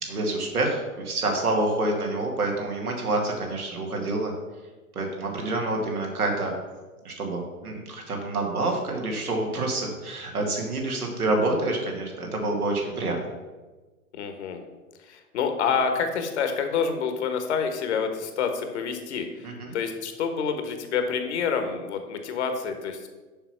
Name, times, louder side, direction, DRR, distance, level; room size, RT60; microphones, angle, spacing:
voice 1, 0.0-4.3 4.9-6.5 7.0-13.2 19.4-19.8, right 2 dB, 75° right, 0 dB, 2.3 m, -27 dB
voice 2, 14.1-14.6 15.0-19.5 19.7-23.1, left 6 dB, 50° left, 6 dB, 1.3 m, -28 dB
6.9 x 5.7 x 5.9 m, 1.3 s
figure-of-eight pair, 110°, 45 cm